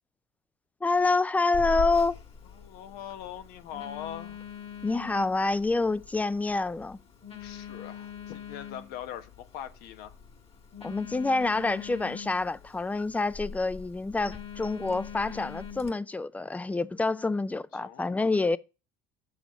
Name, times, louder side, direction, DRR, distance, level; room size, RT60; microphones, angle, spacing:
voice 1, 0.8-2.2 4.8-7.0 10.8-18.6, left 3 dB, 10° left, 0.4 m, -27 dB
Telephone, 1.5-15.9, left 6 dB, 35° left, 1.9 m, -42 dB
voice 2, 2.5-4.4 7.4-10.1 17.8-18.3, left 10 dB, 70° left, 1.2 m, -42 dB
7.1 x 7.1 x 5.1 m
supercardioid pair, 100°, 16 cm